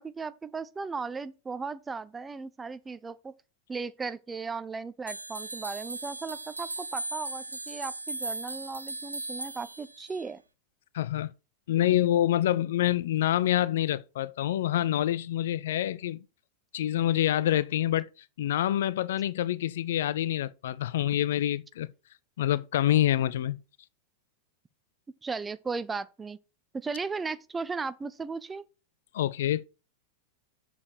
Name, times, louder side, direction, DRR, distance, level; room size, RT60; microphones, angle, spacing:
voice 1, 0.0-3.3 3.7-10.4 25.2-26.4 26.7-28.6, right 4 dB, 15° right, 0.6 m, -36 dB
sound 1, 5.1-10.3, right 3 dB, 80° right, 0.5 m, -38 dB
voice 2, 10.9-11.3 11.7-16.2 16.7-18.1 18.4-21.9 22.4-23.6 29.1-29.7, left 12 dB, 60° left, 0.4 m, -26 dB
7.3 x 4.8 x 6.4 m
figure-of-eight pair, 90°, 0 cm